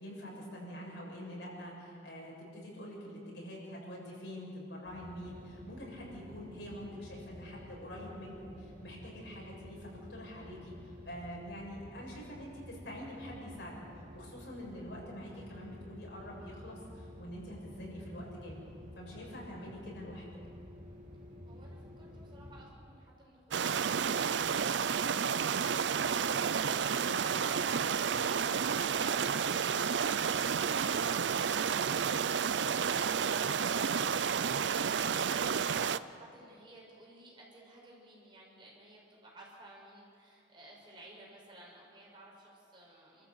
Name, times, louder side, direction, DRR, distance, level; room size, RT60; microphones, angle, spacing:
voice 1, 0.0-13.8 14.1-18.6 19.0-20.3 26.9-27.2, equal, 80° left, -3 dB, 6.9 m, -45 dB
sound 1, 4.8-22.7, equal, 45° right, 3.2 m, -51 dB
sound 2, 23.5-36.0, right 7 dB, 85° right, 0.5 m, -31 dB
voice 2, 34.8-43.3, right 1 dB, 25° right, -3 dB, 5.7 m, -56 dB
27.5 x 14.0 x 8.2 m, 2.6 s
head